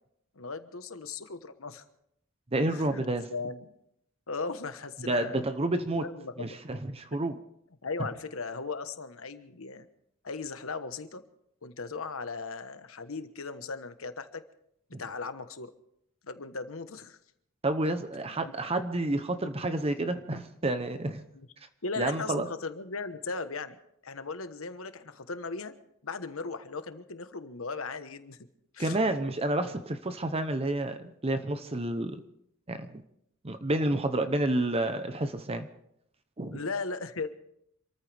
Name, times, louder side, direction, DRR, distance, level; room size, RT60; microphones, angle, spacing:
voice 1, 0.3-1.8 2.7-3.0 3.3-3.7 4.3-5.3 6.0-6.6 7.3-7.4 7.8-9.9 10.2-11.2 11.6-14.4 15.0-15.7 16.2-17.2 18.4-18.5 21.3-21.5 21.8-25.7 26.0-28.4 28.7-29.0 36.5-37.3, left 4 dB, 80° left, 10 dB, 1.2 m, -37 dB
voice 2, 2.5-3.3 5.0-6.0 6.4-7.3 14.9-15.0 17.6-21.2 22.0-22.5 28.8-32.2 32.7-33.0 33.4-35.7 36.4-36.6, right 2 dB, 30° right, 9 dB, 0.8 m, -29 dB
27.5 x 14.0 x 3.5 m, 0.74 s
head